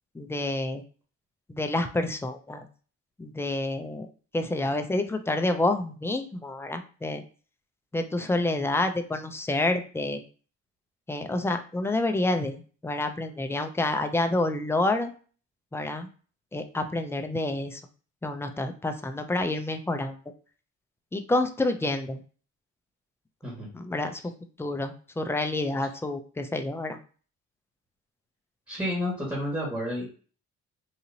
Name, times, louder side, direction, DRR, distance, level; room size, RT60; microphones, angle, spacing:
voice 1, 0.1-0.8 1.5-2.7 3.2-4.1 4.3-7.2 7.9-10.2 11.1-15.1 15.7-16.1 16.5-17.8 18.2-20.2 21.1-22.2 23.7-24.2 24.6-27.0, left 2 dB, 10° left, 6 dB, 0.4 m, -28 dB
voice 2, 28.7-30.0, equal, 15° right, -5 dB, 1.7 m, -30 dB
3.8 x 2.9 x 2.7 m, 0.39 s
cardioid pair, 90°, 30 cm